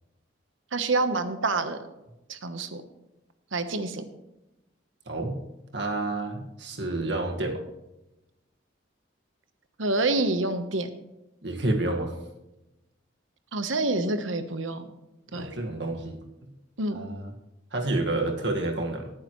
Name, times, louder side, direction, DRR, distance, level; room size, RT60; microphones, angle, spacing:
voice 1, 0.7-1.8 2.3-2.8 3.5-4.0 9.8-10.9 13.5-14.8 15.3-15.5 16.8-17.0, right 2 dB, 90° right, 9 dB, 1.1 m, -27 dB
voice 2, 5.1-5.4 5.7-7.6 11.4-12.1 15.3-16.2 16.9-17.3 17.7-19.1, right 2 dB, 65° right, 3 dB, 1.8 m, -29 dB
18.5 x 9.8 x 3.2 m, 0.96 s
head